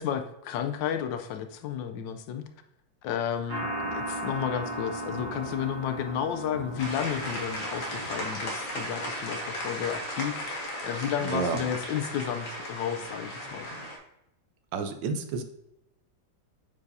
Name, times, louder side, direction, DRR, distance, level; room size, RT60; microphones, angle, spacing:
voice 1, 0.0-2.4 3.0-13.7, left 9 dB, 80° left, 7 dB, 1.3 m, -32 dB
sound 1, 3.5-8.8, right 1 dB, 55° right, 2.1 m, -37 dB
sound 2, 6.8-14.0, equal, 50° left, 1.4 m, -36 dB
voice 2, 11.2-11.6 14.7-15.4, right 5 dB, 80° right, 7 dB, 1.4 m, -30 dB
8.7 x 4.7 x 2.7 m, 0.85 s
omnidirectional pair, 2.0 m